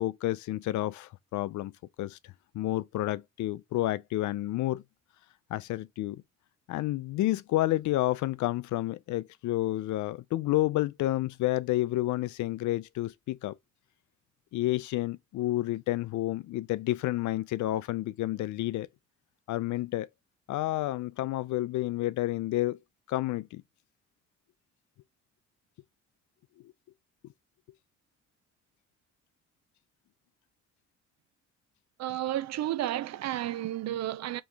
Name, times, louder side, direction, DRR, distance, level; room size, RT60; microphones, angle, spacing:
voice 1, 0.0-1.7 2.0-2.2 2.5-4.8 5.5-6.2 6.7-13.6 14.5-18.9 19.5-20.1 20.5-22.8 23.1-23.6, left 16 dB, 70° left, 0.5 m, -30 dB
voice 2, 32.0-34.4, right 13 dB, 60° right, 0.5 m, -32 dB
3.6 x 3.1 x 3.3 m
cardioid pair, 90°, 30 cm